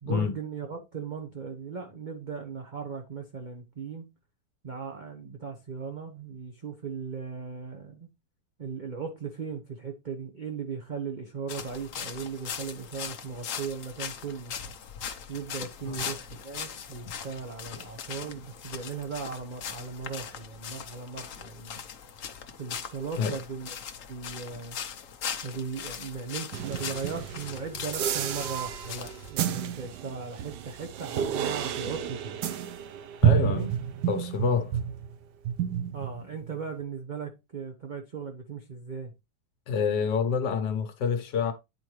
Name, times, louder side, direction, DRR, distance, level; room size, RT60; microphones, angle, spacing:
voice 1, 0.0-4.1 4.6-8.1 8.6-14.5 15.3-21.8 22.6-23.7 24.1-24.8 25.4-32.4 33.3-33.7 35.9-39.1, right 5 dB, 35° right, 0.8 m, -37 dB
sound 1, 11.5-29.3, left 8 dB, 55° left, 1.0 m, -40 dB
sound 2, 26.5-35.2 35.4-36.6, right 9 dB, 75° right, 1.3 m, -30 dB
voice 2, 33.2-33.7 34.1-34.8 39.7-41.5, left 6 dB, 75° left, 1.5 m, -27 dB
9.6 x 4.4 x 3.1 m
omnidirectional pair, 1.9 m